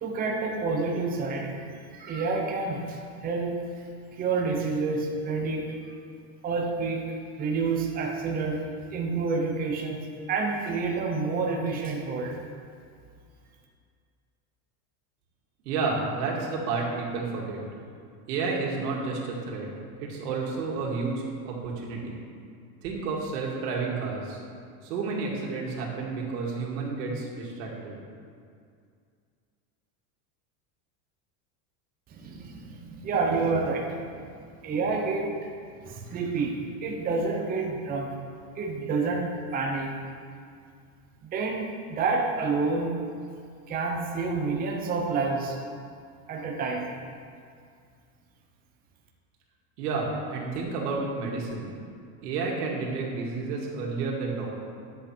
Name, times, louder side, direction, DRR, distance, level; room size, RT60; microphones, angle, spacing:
voice 1, 0.0-3.8 4.1-5.8 6.4-8.6 8.9-12.4 32.1-34.0 34.6-35.4 35.9-38.2 38.6-39.9 41.2-42.9 43.7-45.6 46.3-46.9, right 4 dB, 20° right, 0 dB, 0.9 m, -29 dB
voice 2, 15.6-17.6 18.3-19.7 20.0-22.2 22.8-24.4 24.8-28.0 49.8-51.7 52.2-54.5, right 4 dB, 90° right, -2 dB, 2.5 m, -31 dB
11.5 x 7.8 x 4.5 m, 2.2 s
supercardioid pair, 165°, 46 cm